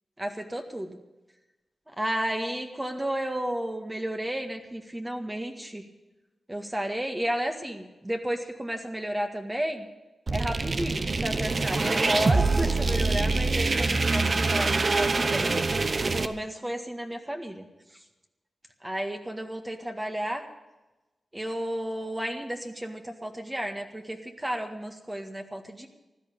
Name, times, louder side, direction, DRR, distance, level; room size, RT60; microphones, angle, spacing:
voice 1, 0.2-1.0 2.0-5.8 6.5-9.9 10.3-15.5 16.1-17.6 18.8-20.5 21.3-25.9, right 1 dB, 15° right, 4 dB, 1.8 m, -32 dB
sound 1, 10.3-16.3, right 3 dB, 45° right, 1.0 m, -25 dB
15.5 x 11.5 x 7.0 m, 1.1 s
cardioid pair, 60°, 0 cm